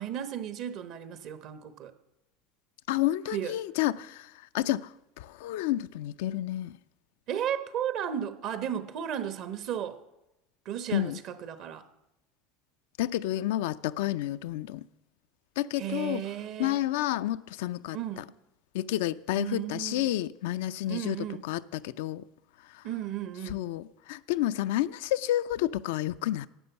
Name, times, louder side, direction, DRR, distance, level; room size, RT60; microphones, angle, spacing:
voice 1, 0.0-1.9 3.3-3.6 7.3-10.0 10.6-11.8 15.8-16.8 17.9-18.3 19.3-20.1 20.9-21.4 22.8-23.6, right 10 dB, 60° right, 1.0 m, -34 dB
voice 2, 2.9-4.9 5.2-6.8 10.9-11.2 13.0-14.8 15.6-16.2 16.6-18.0 18.7-21.2 21.4-22.2 22.7-22.8 23.5-26.5, left 14 dB, 80° left, 0.4 m, -30 dB
11.5 x 8.4 x 6.9 m
supercardioid pair, 95°, 0 cm